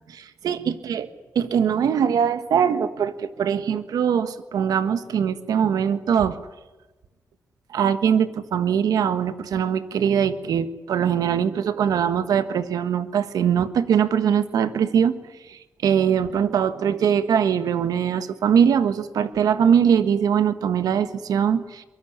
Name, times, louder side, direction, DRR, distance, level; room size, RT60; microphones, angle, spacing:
voice 1, 0.4-1.1 1.3-6.4 7.7-15.1 15.5-21.8, right 8 dB, 90° right, 11 dB, 1.6 m, -22 dB
23.0 x 22.0 x 9.7 m, 1.1 s
cardioid pair, 55°, 6 cm